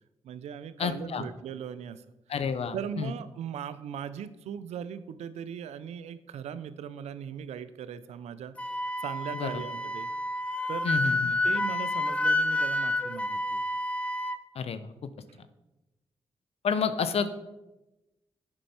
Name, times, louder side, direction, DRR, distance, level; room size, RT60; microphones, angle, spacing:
voice 1, 0.2-2.0 2.3-2.4 2.7-8.6 9.0-10.1 10.7-11.0 11.4-13.6 15.3-15.4, right 8 dB, 85° right, 15 dB, 0.4 m, -39 dB
voice 2, 0.8-1.3 2.3-3.1 9.3-9.6 10.8-11.3 14.5-14.8 16.6-17.3, left 6 dB, 65° left, 12 dB, 0.7 m, -29 dB
Wind instrument woodwind instrument, 8.6-14.4, left 1 dB, 10° left, 0.6 m, -29 dB
8.7 x 5.4 x 4.3 m, 1.0 s
supercardioid pair, 50°, 11 cm